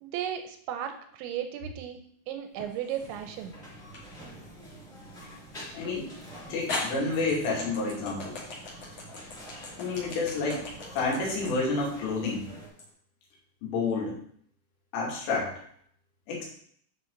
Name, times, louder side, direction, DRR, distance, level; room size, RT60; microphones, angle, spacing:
voice 1, 0.0-2.0 2.3-3.6, right 10 dB, 80° right, 6 dB, 2.8 m, -35 dB
sound 1, 2.6-3.2 3.9-4.0 5.9-6.0 6.7-12.9, left 3 dB, 45° left, 2.6 m, -38 dB
sound 2, 3.0-12.7, right 1 dB, 15° left, 2.7 m, -47 dB
voice 2, 5.7-6.1 6.5-8.4 9.8-10.6 10.9-12.5 13.6-14.2 14.9-15.5 16.3-16.5, left 3 dB, 80° left, -3 dB, 4.9 m, -29 dB
9.9 x 7.1 x 3.9 m, 0.63 s
omnidirectional pair, 5.6 m